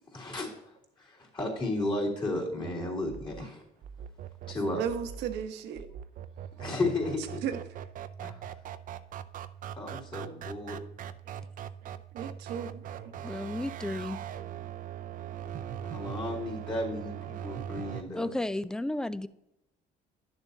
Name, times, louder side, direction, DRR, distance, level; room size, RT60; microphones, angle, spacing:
voice 1, 0.1-3.6 4.5-4.8 6.6-7.6 8.2-8.4 9.8-10.8 15.8-18.3, left 2 dB, 30° left, 3.2 m, -34 dB
sound 1, 2.6-18.0, right 10 dB, 55° right, 0.5 m, -41 dB
voice 2, 4.7-5.9 7.4-7.6 11.8-13.1, right 8 dB, 85° right, 1.1 m, -36 dB
voice 3, 13.2-14.2 18.2-19.3, left 1 dB, 5° left, 0.4 m, -33 dB
11.0 x 6.9 x 2.8 m
cardioid pair, 110°, 17 cm